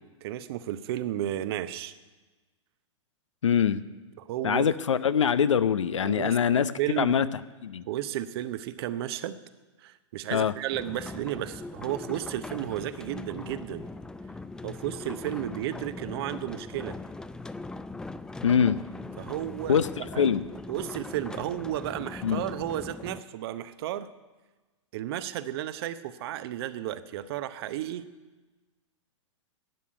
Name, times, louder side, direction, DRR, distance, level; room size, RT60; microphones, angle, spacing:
voice 1, 0.2-1.9 4.2-4.7 6.0-7.1 7.9-9.4 9.8-13.9 14.6-17.0 19.2-20.3 20.7-24.1 24.9-28.0, right 12 dB, 50° right, 13 dB, 0.8 m, -33 dB
voice 2, 3.4-3.8 4.4-6.7 7.0-7.2 7.6-7.8 10.3-10.5 18.4-18.8 19.7-19.9 20.2-20.4 22.2-22.4, left 7 dB, 75° left, 15 dB, 0.6 m, -23 dB
sound 1, 10.7-23.2, left 3 dB, 5° left, 0.4 m, -40 dB
12.0 x 8.5 x 9.3 m, 1.2 s
figure-of-eight pair, 105°, 16 cm